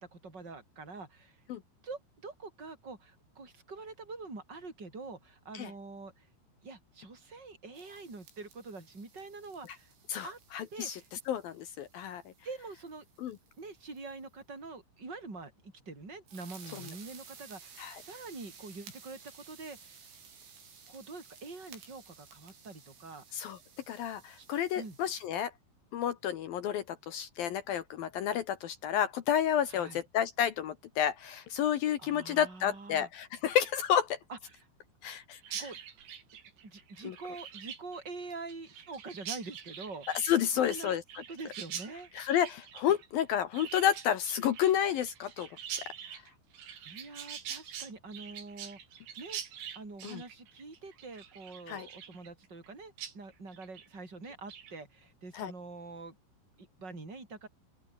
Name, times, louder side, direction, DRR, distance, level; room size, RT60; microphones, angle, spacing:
voice 1, 0.1-1.4 1.8-6.3 6.6-9.9 10.2-10.4 10.7-11.1 12.4-13.0 13.6-20.1 20.9-23.4 24.4-24.5 24.7-25.0 29.7-30.0 32.0-33.1 34.3-34.7 35.5-35.8 36.6-40.1 40.5-42.1 46.9-48.8 49.2-49.4 49.7-56.2 56.6-57.5, right 3 dB, 20° right, 7.3 m, -45 dB
sound 1, 7.8-14.1 16.3-25.3, right 6 dB, 80° right, 9.2 m, -55 dB
voice 2, 10.1-11.0 11.3-12.2 13.2-13.4 17.8-17.9 23.3-23.6 23.9-25.5 25.9-34.2 35.0-35.6 37.0-37.1 40.2-41.0 42.2-45.5 50.0-50.2 51.7-51.9 55.3-55.5, left 10 dB, 70° left, 2.4 m, -30 dB
Chirp tweet, 35.4-52.7 53.0-53.1 53.5-53.9 54.2-54.7, right 9 dB, 60° right, 5.1 m, -45 dB
open air
omnidirectional pair, 5.5 m